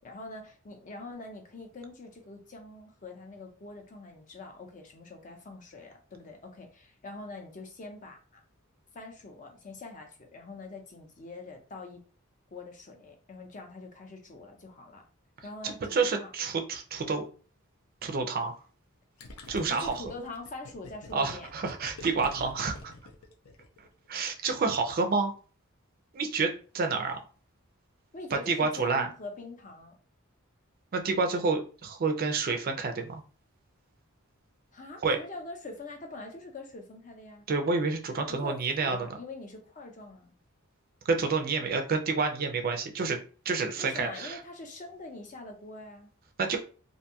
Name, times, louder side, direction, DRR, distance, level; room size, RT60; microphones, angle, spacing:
voice 1, 0.0-8.4 8.9-12.0 12.5-15.0 15.4-16.3 19.7-21.5 28.1-30.0 34.7-37.5 38.1-40.3 43.8-46.1, left 2 dB, 35° left, 3 dB, 0.5 m, -44 dB
voice 2, 15.6-17.3 18.0-18.5 19.5-20.0 21.1-22.9 24.1-25.3 26.1-27.2 28.5-29.1 30.9-33.2 35.0-35.2 37.5-39.1 41.1-43.2 43.5-44.4 46.4-46.6, right 4 dB, 45° right, 5 dB, 0.4 m, -29 dB
Gurgling, 19.2-23.9, left 2 dB, 80° left, 0.6 m, -46 dB
2.6 x 2.2 x 2.7 m, 0.38 s
head